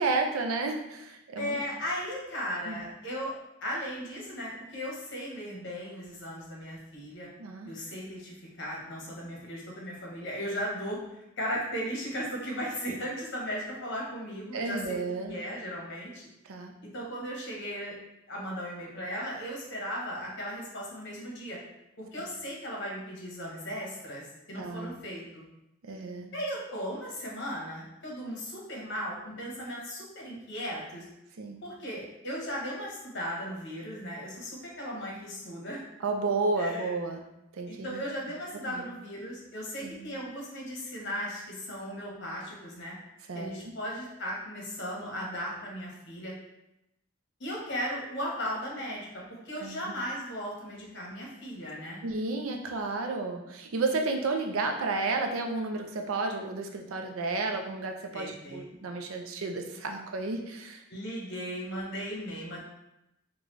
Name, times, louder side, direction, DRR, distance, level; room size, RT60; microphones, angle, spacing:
voice 1, 0.0-1.6 2.7-2.8 7.4-7.7 14.5-15.4 16.4-16.7 22.2-22.3 24.6-25.0 25.8-26.3 31.4-31.6 36.0-37.2 37.5-38.0 38.6-38.8 39.8-40.0 43.3-43.7 49.6-50.0 52.0-60.8, right 3 dB, 90° right, 4 dB, 0.5 m, -32 dB
voice 2, 1.4-3.3 3.6-7.3 7.6-16.2 16.9-18.0 18.3-21.6 22.0-25.4 26.3-31.1 31.6-35.8 36.6-36.9 37.7-42.9 43.3-46.3 47.4-52.0 58.1-58.7 60.9-62.6, equal, 60° left, -3 dB, 1.1 m, -37 dB
3.9 x 2.3 x 3.0 m, 0.87 s
head